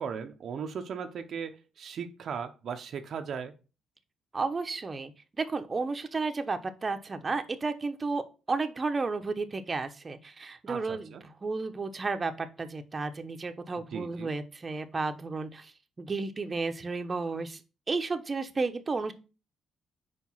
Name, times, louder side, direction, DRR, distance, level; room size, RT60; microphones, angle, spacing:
voice 1, 0.0-3.5 10.7-11.2 13.9-14.3, right 6 dB, 60° right, 6 dB, 0.7 m, -37 dB
voice 2, 4.3-5.1 5.4-11.1 11.4-15.7 16.0-17.6 17.9-19.1, right 3 dB, 30° right, 7 dB, 0.8 m, -32 dB
4.9 x 4.8 x 5.5 m, 0.32 s
cardioid pair, 90°, 0 cm